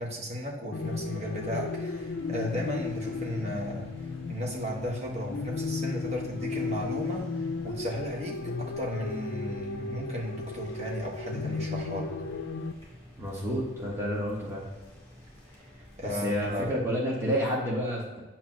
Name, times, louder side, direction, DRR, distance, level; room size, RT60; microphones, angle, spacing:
voice 1, 0.0-3.9 4.3-7.3 7.6-12.1 16.0-16.7, equal, 35° right, -2 dB, 1.4 m, -35 dB
sound 1, 0.7-12.7, left 4 dB, 75° left, 0.5 m, -35 dB
sound 2, 0.8-16.8, left 1 dB, 15° left, 2.1 m, -51 dB
voice 2, 13.2-14.6 16.0-18.2, equal, 15° right, -5 dB, 1.3 m, -30 dB
8.5 x 2.9 x 6.1 m, 1.2 s
head